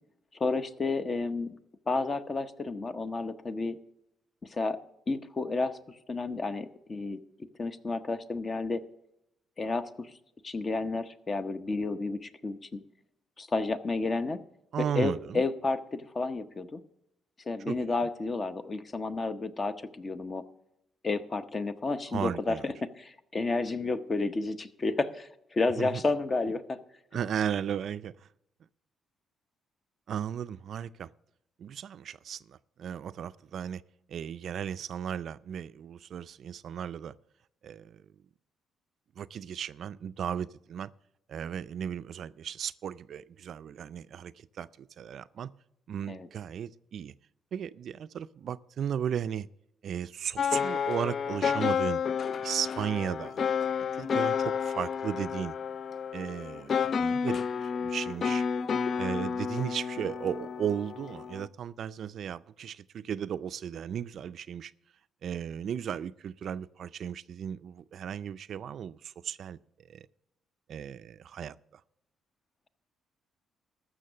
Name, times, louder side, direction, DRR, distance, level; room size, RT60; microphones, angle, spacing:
voice 1, 0.3-1.6 1.9-3.8 4.5-4.8 5.1-5.8 6.1-7.2 7.6-8.8 9.6-10.1 10.4-12.8 13.4-14.4 15.0-16.8 17.5-20.4 21.0-26.8 46.1-46.3, left 3 dB, 35° left, 0.8 m, -31 dB
voice 2, 14.7-15.4 17.7-17.8 22.1-22.7 25.8-26.0 27.1-28.3 30.1-31.1 31.6-33.8 34.1-37.2 37.6-38.0 39.2-40.9 41.3-45.5 45.9-47.1 47.5-49.5 49.8-52.0 52.4-53.4 53.8-55.6 56.1-58.5 59.0-64.7 65.2-69.6 69.9-70.1 70.7-71.8, right 8 dB, 65° right, 0.3 m, -35 dB
sound 1, 50.4-61.5, left 6 dB, 50° left, 0.3 m, -31 dB
14.0 x 6.3 x 6.7 m
cardioid pair, 90°, 0 cm